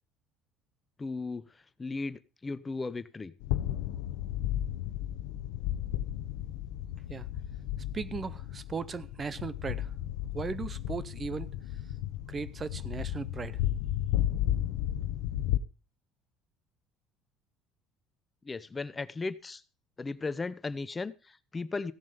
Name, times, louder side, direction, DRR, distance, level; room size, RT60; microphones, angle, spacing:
voice 1, 1.0-1.4 1.8-3.3 18.4-19.6 20.0-21.9, left 3 dB, 20° left, 0.7 m, -36 dB
sound 1, 3.4-15.6, left 12 dB, 85° left, 0.8 m, -33 dB
voice 2, 7.9-9.9 10.3-11.5 12.3-13.6, right 5 dB, 30° right, 0.6 m, -37 dB
15.5 x 7.4 x 5.2 m
cardioid pair, 115°, 0 cm